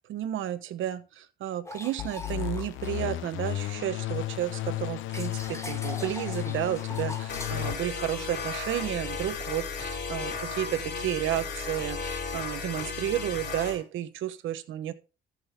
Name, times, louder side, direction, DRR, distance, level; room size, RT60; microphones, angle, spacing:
voice 1, 0.1-14.9, right 12 dB, 80° right, 12 dB, 1.1 m, -32 dB
sound 1, 1.6-3.7 4.1-9.5, left 2 dB, 15° left, 2.0 m, -44 dB
sound 2, 2.0-7.8, left 15 dB, 80° left, 0.6 m, -33 dB
sound 3, 7.3-13.8, left 5 dB, 60° left, 3.7 m, -35 dB
14.0 x 6.3 x 3.6 m, 0.32 s
cardioid pair, 90°, 20 cm